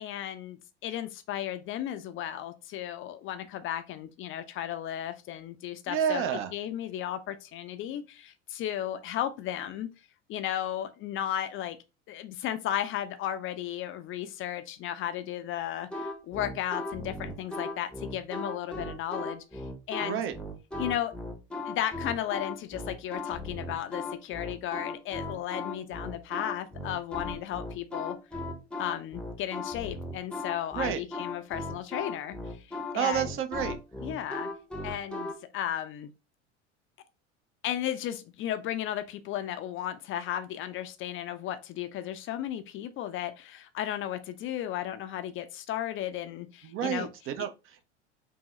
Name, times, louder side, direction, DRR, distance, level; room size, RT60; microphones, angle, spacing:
voice 1, 0.0-6.2 6.5-9.9 10.3-11.8 12.1-20.2 20.8-21.1 21.7-28.2 28.8-33.3 34.0-34.5 34.8-36.1 37.6-47.1, left 11 dB, 35° left, 0.4 m, -34 dB
voice 2, 5.9-6.5 20.0-20.3 30.7-31.0 32.9-33.8 46.6-47.8, right 9 dB, 35° right, 0.5 m, -30 dB
sound 1, 15.9-35.3, left 2 dB, 5° left, 0.7 m, -37 dB
3.5 x 2.0 x 3.0 m
hypercardioid pair, 90°, 35 cm